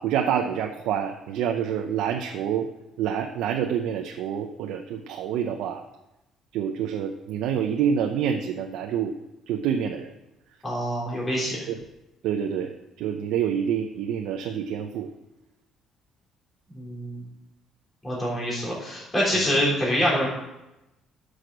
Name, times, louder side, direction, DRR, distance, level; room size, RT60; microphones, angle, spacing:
voice 1, 0.0-2.7 3.0-5.8 6.5-9.1 9.5-10.1 11.7-11.8 12.2-12.7 13.0-15.1 19.3-19.5, right 8 dB, 80° right, 4 dB, 0.8 m, -27 dB
voice 2, 10.6-11.6 16.7-17.2 18.0-20.3, equal, 15° left, -5 dB, 3.7 m, -25 dB
11.5 x 6.6 x 6.2 m, 0.94 s
cardioid pair, 155°, 0 cm